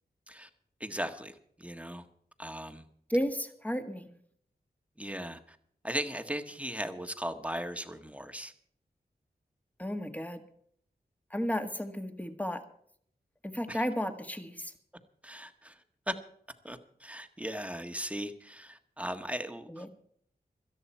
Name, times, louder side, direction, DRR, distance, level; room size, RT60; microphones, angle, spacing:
voice 1, 0.8-2.1 2.4-2.8 5.0-5.6 5.8-8.5 13.7-13.8 15.2-16.1 16.6-19.9, equal, 10° right, 1.5 m, -38 dB
voice 2, 3.1-4.1 9.8-10.4 11.3-12.6 13.4-14.7 19.7-19.9, equal, 10° left, 1.7 m, -33 dB
17.5 x 13.0 x 4.5 m
cardioid pair, 60°, 17 cm